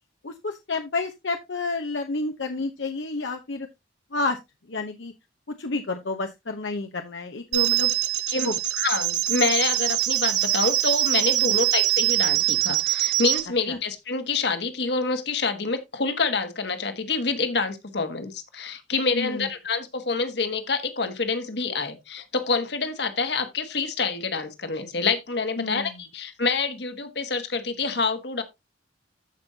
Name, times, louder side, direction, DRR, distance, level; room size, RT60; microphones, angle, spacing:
voice 1, 0.2-3.7 4.1-4.4 4.7-5.1 5.6-7.9 8.4-8.5 11.4-11.5 19.1-19.5 25.6-25.9, left 3 dB, 80° left, 0.9 m, -30 dB
sound 1, 7.5-13.4, right 15 dB, 75° right, 1.3 m, -23 dB
voice 2, 8.8-28.4, left 4 dB, 65° left, 1.5 m, -27 dB
14.0 x 5.4 x 2.8 m
head